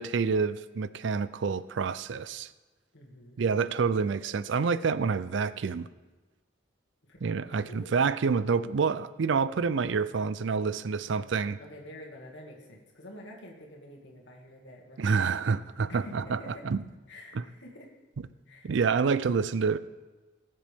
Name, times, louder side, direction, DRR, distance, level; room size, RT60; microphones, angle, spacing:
voice 1, 0.0-2.5 3.4-5.9 7.2-11.6 15.0-16.8 18.6-19.8, right 5 dB, 65° right, 15 dB, 0.4 m, -28 dB
voice 2, 2.9-3.4 7.0-7.2 7.5-8.0 11.6-15.2 15.9-16.7 17.1-17.9 18.5-19.2, left 1 dB, 65° left, -1 dB, 2.2 m, -48 dB
18.0 x 7.6 x 3.6 m, 1.2 s
head